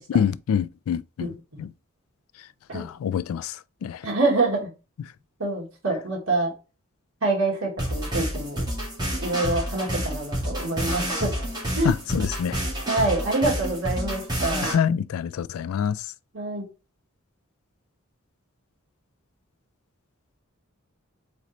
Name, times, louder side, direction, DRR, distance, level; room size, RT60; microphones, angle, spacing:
voice 1, 0.1-1.3 1.6-1.7 2.7-3.6 3.8-4.0 11.8-12.6 14.6-16.0, left 8 dB, 80° left, 0.3 m, -26 dB
voice 2, 1.2-1.6 2.7-2.8 4.0-4.7 5.4-6.5 7.2-8.6 9.2-11.3 11.8-11.9 12.9-14.7 16.3-16.6, right 2 dB, 75° right, 2.0 m, -26 dB
sound 1, 7.8-14.7, equal, 20° right, 2.0 m, -29 dB
4.1 x 4.0 x 3.1 m
head